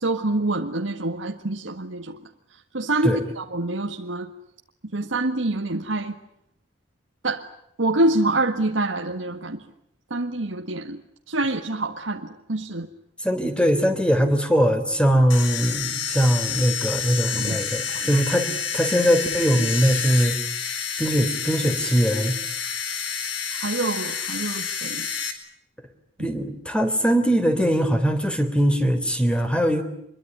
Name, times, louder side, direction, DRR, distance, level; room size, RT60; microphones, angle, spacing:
voice 1, 0.0-2.2 2.7-4.3 4.9-6.2 7.2-7.4 7.8-9.6 10.1-11.0 11.3-12.9 17.3-18.2 23.5-25.1, right 2 dB, 85° right, 1.8 m, -26 dB
voice 2, 13.2-20.4 21.0-22.4 26.2-29.8, equal, 5° left, 3.4 m, -21 dB
sound 1, 15.3-25.3, left 6 dB, 75° left, 4.4 m, -29 dB
26.0 x 22.5 x 9.6 m
head